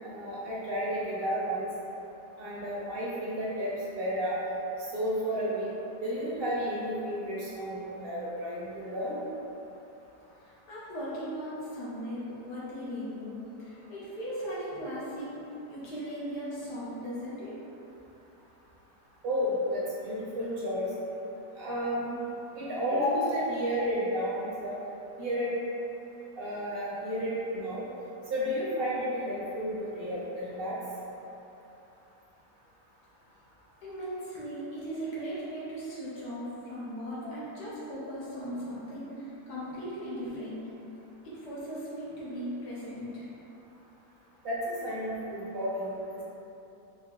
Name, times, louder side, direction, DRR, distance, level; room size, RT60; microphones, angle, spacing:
voice 1, 0.0-1.7 2.4-4.4 4.9-5.7 6.0-9.2 19.2-20.9 21.6-22.2 22.6-24.8 25.2-25.5 26.3-27.8 28.3-30.7 44.4-45.9, equal, 45° right, -7 dB, 0.9 m, -32 dB
voice 2, 10.4-15.4 15.7-17.5 33.8-40.7 41.2-43.3, equal, 75° left, -8 dB, 1.6 m, -38 dB
4.6 x 2.3 x 3.7 m, 3.0 s
omnidirectional pair, 1.8 m